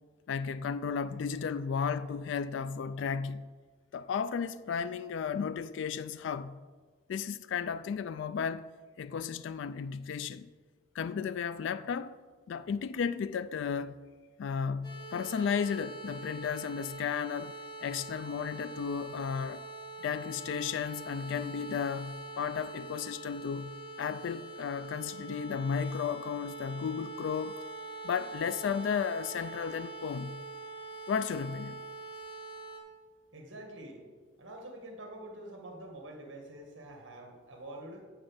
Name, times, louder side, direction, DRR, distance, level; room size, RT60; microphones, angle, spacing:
voice 1, 0.3-3.4 3.9-6.6 7.1-8.7 9.0-10.5 10.9-12.2 12.5-14.0 14.4-19.6 20.0-27.6 28.0-30.4 31.1-31.8, left 6 dB, 65° left, 0.3 m, -34 dB
sound 1, 14.8-32.8, right 2 dB, 20° left, 2.0 m, -44 dB
voice 2, 33.3-34.0 34.4-38.1, right 1 dB, 75° right, 2.0 m, -46 dB
8.4 x 7.0 x 5.6 m
head